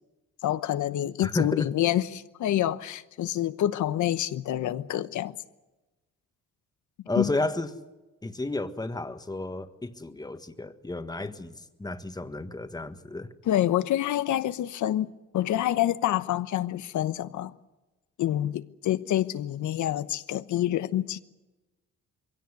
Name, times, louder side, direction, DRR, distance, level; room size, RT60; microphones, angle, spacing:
voice 1, 0.4-5.3 7.1-7.3 13.4-17.5 18.2-21.2, left 12 dB, 75° left, 1.1 m, -27 dB
voice 2, 1.2-1.7 7.1-7.7 8.2-13.3, left 2 dB, 15° left, 1.6 m, -32 dB
22.5 x 17.0 x 9.7 m
cardioid pair, 90°, 30 cm